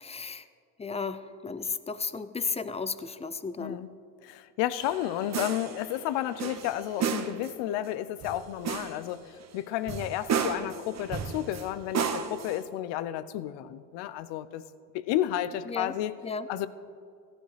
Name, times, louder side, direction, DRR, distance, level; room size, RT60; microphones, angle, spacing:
voice 1, 0.0-0.4 0.8-3.8 15.7-15.9 16.2-16.5, left 4 dB, 15° left, 13 dB, 0.4 m, -34 dB
voice 2, 3.6-3.9 4.2-14.6 14.9-16.1 16.5-16.7, left 12 dB, 80° left, 15 dB, 0.6 m, -32 dB
sound 1, 4.8-6.0 6.4-7.5 8.2-9.0 9.4-9.5 9.9-11.7 11.9-12.6, right 6 dB, 40° right, 0.9 m, -33 dB
15.0 x 11.0 x 3.2 m, 2.3 s
supercardioid pair, 80°, 42 cm